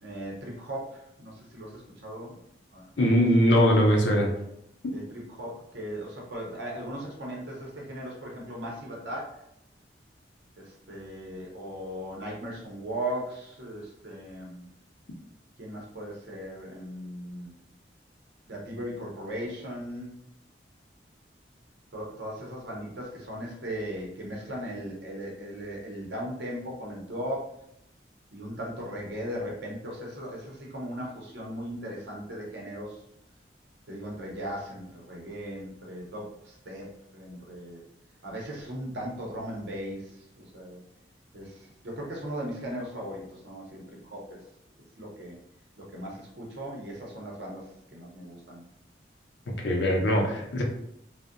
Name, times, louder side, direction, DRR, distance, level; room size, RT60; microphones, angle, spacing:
voice 1, 0.0-2.4 2.7-3.1 4.9-9.4 10.6-14.6 15.6-17.5 18.5-20.2 21.9-27.5 28.3-33.0 33.9-37.8 38.2-40.1 40.4-40.8 41.3-44.4 45.0-45.3 45.8-48.7, equal, 75° right, -2 dB, 0.7 m, -38 dB
voice 2, 3.0-4.3 49.6-50.6, equal, 75° left, 0 dB, 0.5 m, -21 dB
2.6 x 2.0 x 2.4 m, 0.75 s
head